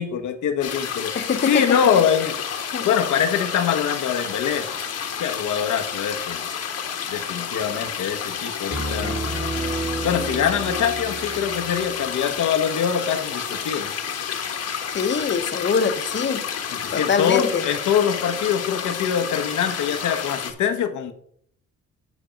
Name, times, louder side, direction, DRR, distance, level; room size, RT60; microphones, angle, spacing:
voice 1, 0.0-1.1 1.5-2.3 2.8-4.7 5.2-6.5 7.1-9.2 10.0-13.9 16.7-21.1, left 8 dB, 75° left, 7 dB, 1.1 m, -23 dB
sound 1, 0.6-20.5, left 7 dB, 55° left, 1.3 m, -30 dB
voice 2, 1.1-1.6 2.7-2.9 14.9-16.4 16.9-17.7, left 6 dB, 40° left, 9 dB, 1.0 m, -23 dB
Piano, 8.7-14.2, right 2 dB, 35° right, 1.7 m, -32 dB
9.6 x 4.4 x 5.1 m, 0.65 s
cardioid pair, 90°, 30 cm